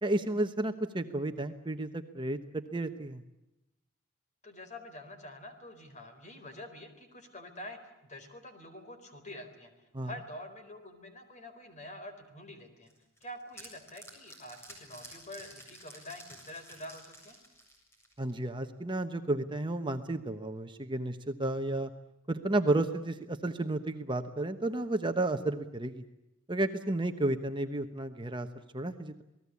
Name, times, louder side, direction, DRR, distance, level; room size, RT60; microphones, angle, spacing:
voice 1, 0.0-3.2 9.9-10.1 18.2-21.9 22.3-26.0 26.5-28.5 28.7-29.2, right 2 dB, 25° right, 7 dB, 1.1 m, -32 dB
voice 2, 4.4-9.7 10.0-12.9 13.2-17.4, left 1 dB, 35° left, 8 dB, 4.3 m, -47 dB
sound 1, 12.9-18.4, equal, 15° left, 7.6 m, -51 dB
28.5 x 19.5 x 8.4 m, 0.92 s
head